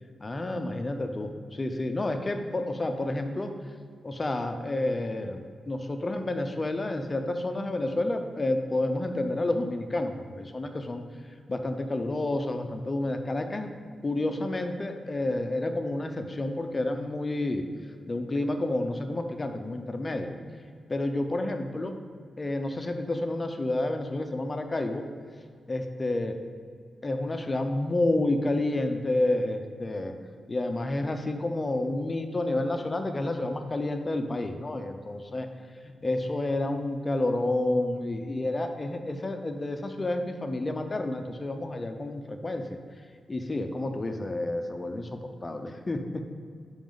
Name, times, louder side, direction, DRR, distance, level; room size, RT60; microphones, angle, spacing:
voice 1, 0.2-3.5 4.0-11.0 11.5-13.7 14.0-17.6 18.1-20.3 20.9-22.0 22.4-25.0 25.7-26.3 27.0-30.1 30.5-35.5 36.0-42.8 43.3-46.2, left 2 dB, 20° left, 6 dB, 0.6 m, -30 dB
12.5 x 5.1 x 3.9 m, 2.1 s
wide cardioid pair, 175°, 0 cm